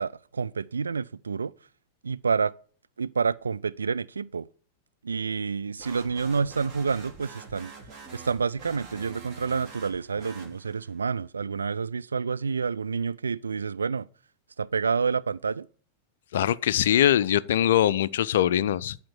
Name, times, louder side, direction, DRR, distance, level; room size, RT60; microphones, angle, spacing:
voice 1, 0.0-1.5 2.0-2.5 3.0-4.5 5.0-7.7 8.1-14.1 14.6-15.7, right 5 dB, 75° right, 0.3 m, -28 dB
sound 1, 5.8-11.0, right 4 dB, 35° right, 2.6 m, -46 dB
voice 2, 16.3-19.0, left 11 dB, 60° left, 0.4 m, -22 dB
10.5 x 4.3 x 6.8 m
figure-of-eight pair, 90°, 0 cm